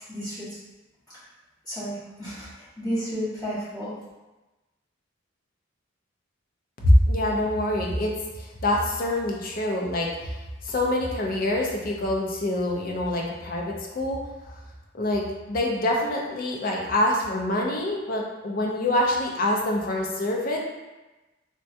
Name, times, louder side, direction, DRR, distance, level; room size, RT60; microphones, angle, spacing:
voice 1, 0.1-0.5 1.6-3.9, equal, 20° left, -12 dB, 1.5 m, -32 dB
voice 2, 6.8-10.3 10.6-14.2 14.9-20.6, left 1 dB, 45° left, 0 dB, 0.5 m, -25 dB
3.4 x 2.2 x 2.7 m, 1.1 s
head